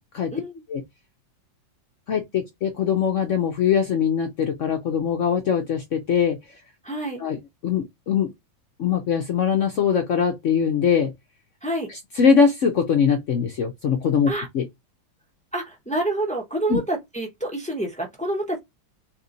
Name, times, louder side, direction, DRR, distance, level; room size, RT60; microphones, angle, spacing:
voice 1, 0.3-0.6 6.8-7.2 11.6-11.9 14.3-14.5 15.5-18.6, right 1 dB, 10° left, 0.3 m, -28 dB
voice 2, 2.1-6.4 7.2-7.4 7.6-8.3 8.8-11.1 12.2-14.7 16.7-16.8, left 7 dB, 65° left, 0.7 m, -22 dB
3.6 x 2.9 x 3.7 m
omnidirectional pair, 2.1 m